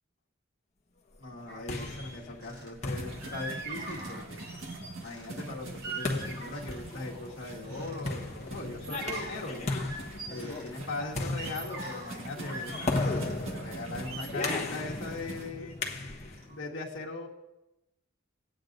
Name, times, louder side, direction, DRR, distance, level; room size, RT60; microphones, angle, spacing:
voice 1, 1.2-4.4 5.0-9.7 10.3-15.8 16.5-17.3, left 2 dB, 60° left, -4 dB, 1.6 m, -40 dB
sound 1, 1.3-16.5, left 2 dB, 35° left, 1.2 m, -37 dB
sound 2, 1.5-2.7 3.2-5.4 5.8-7.0 7.4-8.0 8.4-10.7 11.1-13.3 13.8-16.0 16.3-16.6, right 3 dB, 55° right, 3.9 m, -43 dB
sound 3, 2.9-15.5, right 2 dB, 75° right, 1.7 m, -44 dB
19.5 x 8.9 x 2.6 m, 0.96 s
head